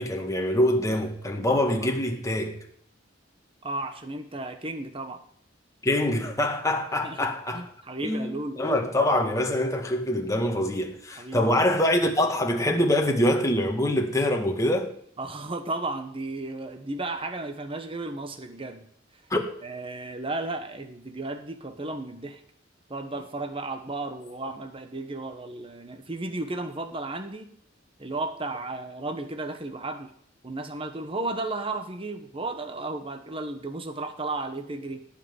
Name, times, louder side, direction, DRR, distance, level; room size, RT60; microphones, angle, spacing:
voice 1, 0.0-2.6 5.8-7.7 8.0-14.9 19.3-19.4, left 1 dB, 15° left, 2.0 m, -24 dB
voice 2, 3.6-5.2 7.0-8.7 11.1-11.5 15.2-18.8 19.6-22.4 22.9-27.5 28.0-30.1 30.4-35.0, right 2 dB, 30° right, 1.2 m, -34 dB
17.5 x 5.9 x 9.6 m
head